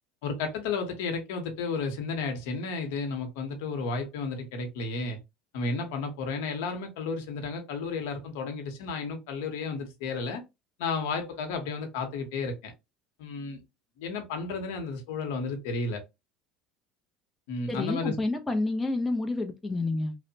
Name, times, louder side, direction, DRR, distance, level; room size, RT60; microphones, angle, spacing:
voice 1, 0.2-5.2 5.5-10.4 10.8-12.7 13.2-13.6 14.0-16.0 17.5-18.2, left 4 dB, 85° left, 0.8 m, -32 dB
voice 2, 17.7-20.2, left 2 dB, 15° left, 0.5 m, -29 dB
3.0 x 2.1 x 2.7 m
supercardioid pair, 120°, 0 cm